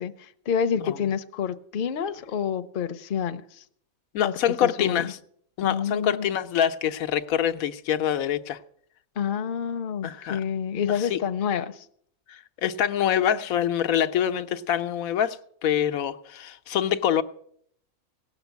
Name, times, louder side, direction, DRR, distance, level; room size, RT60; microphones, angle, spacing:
voice 1, 0.0-3.6 4.2-5.1 5.6-6.3 9.2-11.9, left 7 dB, 50° left, 0.7 m, -28 dB
voice 2, 4.1-5.2 5.6-8.6 10.0-10.4 10.9-11.2 12.3-17.2, left 9 dB, 90° left, 1.2 m, -25 dB
17.5 x 7.1 x 8.2 m
omnidirectional pair, 1.4 m